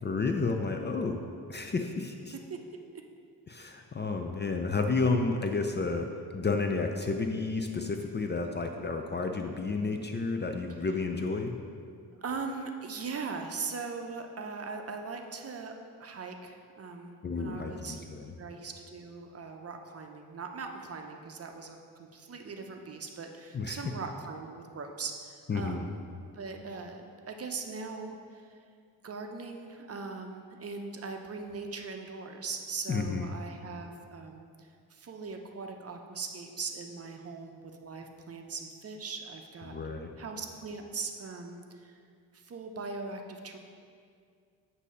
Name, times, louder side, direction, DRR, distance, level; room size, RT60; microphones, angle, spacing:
voice 1, 0.0-1.2 1.5-2.3 3.5-6.1 6.3-11.6 17.2-18.3 23.5-23.8 25.5-25.9 32.9-33.3 39.7-40.1, left 3 dB, 30° left, 4 dB, 0.4 m, -31 dB
voice 2, 12.2-18.0 18.4-28.5 29.0-39.8 40.2-42.0 42.3-43.6, right 4 dB, 40° right, 4 dB, 0.6 m, -40 dB
8.1 x 2.8 x 5.5 m, 2.3 s
cardioid pair, 75°, 39 cm